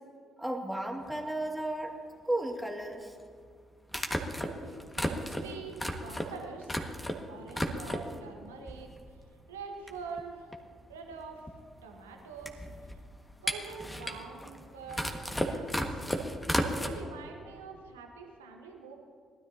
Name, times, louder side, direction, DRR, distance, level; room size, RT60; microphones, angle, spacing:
voice 1, 0.4-1.9 2.2-3.2, right 1 dB, 5° right, 1 dB, 2.3 m, -34 dB
sound 1, 1.1-1.2 2.9-3.0 3.9-7.2 7.5-8.2 8.7-9.3 9.6-9.7 9.9-16.9, equal, 10° left, 1.8 m, -34 dB
voice 2, 4.4-6.7 7.3-9.2 9.5-10.5 10.9-11.5 11.8-12.7 13.4-16.0 16.7-19.0, right 4 dB, 80° right, 2 dB, 1.3 m, -45 dB
21.5 x 13.0 x 2.9 m, 2.2 s
figure-of-eight pair, 45°, 0 cm